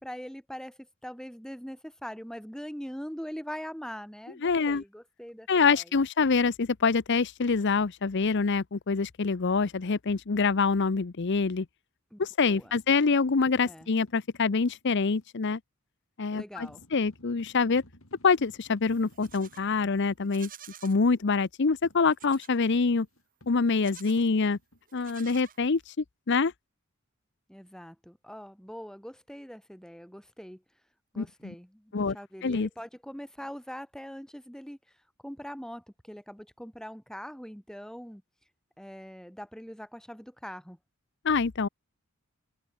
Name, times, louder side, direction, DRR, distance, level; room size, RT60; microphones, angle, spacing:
voice 1, 0.0-6.0 12.1-12.8 13.6-13.9 16.3-16.8 27.5-30.6 31.1-35.0 35.2-38.2 38.8-40.8, equal, 5° left, 5.4 m, -42 dB
voice 2, 4.4-4.8 5.5-11.7 12.2-15.6 16.2-17.8 18.2-20.5 20.8-23.1 23.5-24.6 24.9-25.8 26.3-26.5 31.2-31.5 31.9-32.2 32.4-32.7 41.2-41.7, left 4 dB, 55° left, 0.7 m, -25 dB
sound 1, 12.5-15.3 16.6-20.3 21.8-24.8, left 1 dB, 70° left, 5.9 m, -57 dB
Livestock farm animals working animals, 18.9-19.7 20.2-21.0 22.1-22.6 23.7-24.3 24.9-25.9, right 9 dB, 40° right, 4.8 m, -50 dB
head